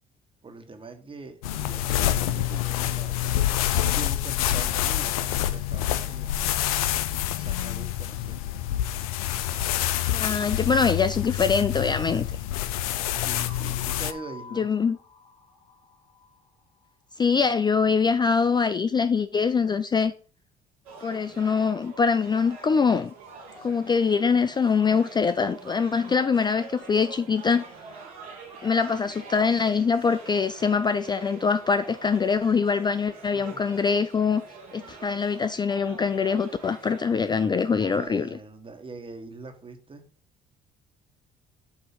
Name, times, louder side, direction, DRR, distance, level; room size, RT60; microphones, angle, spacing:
voice 1, 0.4-3.4 3.9-6.8 7.3-8.4 13.1-14.7 33.3-33.6 37.7-40.0, right 3 dB, 30° right, 1.5 m, -43 dB
sound 1, 1.4-14.1, left 12 dB, 85° left, 0.4 m, -27 dB
voice 2, 10.1-12.3 14.6-15.0 17.2-20.1 21.0-23.1 23.6-27.6 28.6-34.4 34.7-38.4, left 5 dB, 25° left, 0.4 m, -23 dB
sound 2, 13.1-16.9, left 4 dB, 60° left, 2.6 m, -48 dB
sound 3, 20.8-38.1, right 4 dB, 85° right, 2.0 m, -45 dB
7.3 x 3.0 x 5.4 m
hypercardioid pair, 60°, 18 cm